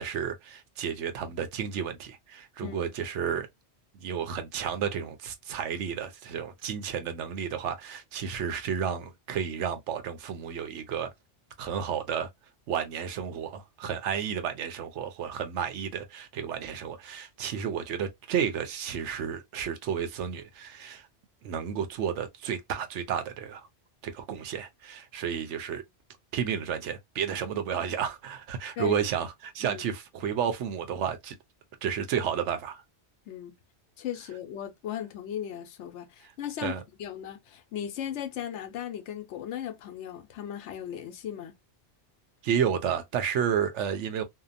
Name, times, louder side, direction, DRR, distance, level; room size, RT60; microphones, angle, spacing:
voice 1, 0.0-3.5 3.9-11.1 11.6-12.3 12.7-21.1 21.4-23.7 24.0-25.8 26.3-31.4 31.8-32.8 36.6-36.8 42.4-44.2, right 8 dB, 80° right, 0.9 m, -32 dB
voice 2, 33.3-33.6 34.0-36.7 37.0-41.5, left 10 dB, 80° left, 0.9 m, -37 dB
2.7 x 2.1 x 2.4 m
omnidirectional pair, 1.2 m